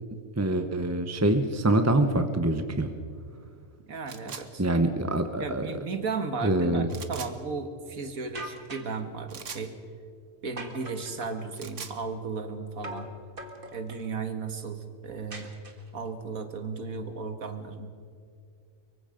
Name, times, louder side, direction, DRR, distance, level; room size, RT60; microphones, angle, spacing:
voice 1, 0.4-2.9 4.6-5.6 6.4-6.9, right 1 dB, 15° right, 7 dB, 0.9 m, -25 dB
voice 2, 3.9-4.6 5.4-9.7 10.4-13.1 13.7-15.5 15.9-17.9, right 4 dB, 85° right, 8 dB, 2.0 m, -35 dB
sound 1, 4.1-4.5 6.9-7.3 9.3-9.7 11.4-12.0, right 6 dB, 65° right, 1.6 m, -41 dB
sound 2, 8.3-9.0 10.6-11.5 12.8-13.1 13.4-14.1 15.3-16.1, right 1 dB, 40° right, 2.0 m, -42 dB
24.0 x 23.0 x 5.2 m, 2.3 s
omnidirectional pair, 1.4 m